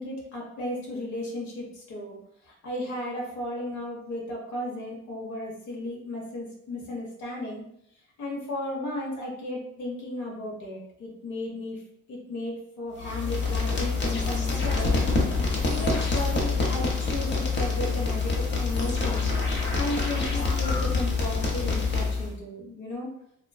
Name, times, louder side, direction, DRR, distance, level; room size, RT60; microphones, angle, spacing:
voice 1, 0.0-7.6 8.2-11.8 12.1-15.0 15.6-19.3 19.7-23.1, left 1 dB, 75° left, -2 dB, 0.8 m, -34 dB
sound 1, 12.9-22.4, left 4 dB, 40° left, 0.7 m, -26 dB
2.5 x 2.2 x 2.2 m, 0.74 s
cardioid pair, 90°, 30 cm